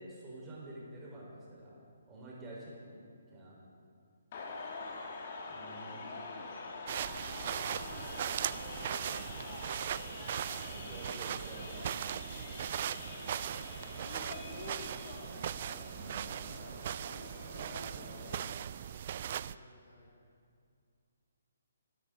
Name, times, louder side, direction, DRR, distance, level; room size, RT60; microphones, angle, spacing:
voice 1, 0.0-3.0 3.3-3.6 5.5-6.1 8.9-9.3 10.6-12.2 15.9-16.4, right 1 dB, 15° right, -5 dB, 4.1 m, -49 dB
sound 1, 4.3-18.5, left 3 dB, 40° left, 1.7 m, -45 dB
voice 2, 5.3-10.0 12.3-14.9 16.0-16.8 17.5-20.4, left 1 dB, 55° left, -2 dB, 4.6 m, -59 dB
sound 2, 6.9-19.6, right 10 dB, 40° right, 0.3 m, -39 dB
26.0 x 12.0 x 3.8 m, 2.3 s
figure-of-eight pair, 135°, 0 cm